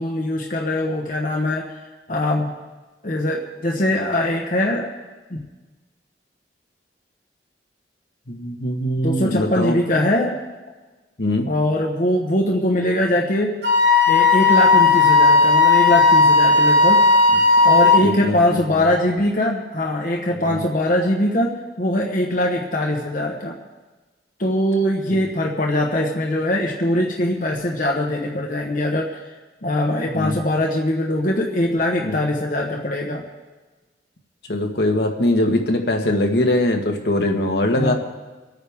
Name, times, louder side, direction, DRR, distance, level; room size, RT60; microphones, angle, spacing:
voice 1, 0.0-1.7 2.1-2.5 3.0-4.9 5.3-5.4 9.0-10.3 11.5-13.6 14.1-17.0 17.6-23.6 24.4-29.2 29.6-33.2 37.7-37.9, left 1 dB, 50° left, 0 dB, 1.2 m, -22 dB
voice 2, 8.3-9.8 11.2-11.5 17.3-17.4 18.0-18.6 20.5-20.6 25.1-25.2 30.1-30.4 32.0-32.3 34.5-37.9, left 1 dB, 70° left, 2 dB, 1.5 m, -21 dB
Wind instrument woodwind instrument, 13.6-18.1, left 3 dB, 80° right, 1.7 m, -14 dB
27.0 x 9.2 x 3.6 m, 1.2 s
head